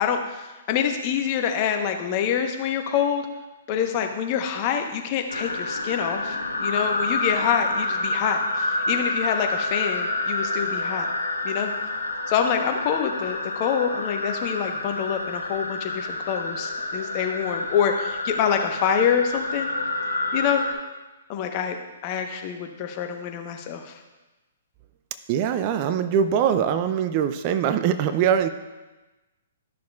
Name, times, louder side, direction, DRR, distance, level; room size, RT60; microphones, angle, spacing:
voice 1, 0.0-3.3 3.7-11.1 11.4-11.7 12.3-19.7 20.3-20.6 21.3-21.8 22.0-23.9, left 8 dB, 40° left, 5 dB, 1.0 m, -26 dB
sound 1, 5.3-20.7, left 2 dB, 90° left, 0.9 m, -28 dB
voice 2, 25.3-28.5, right 8 dB, 40° right, 11 dB, 0.5 m, -22 dB
12.5 x 6.2 x 2.4 m, 1.1 s
figure-of-eight pair, 125°, 0 cm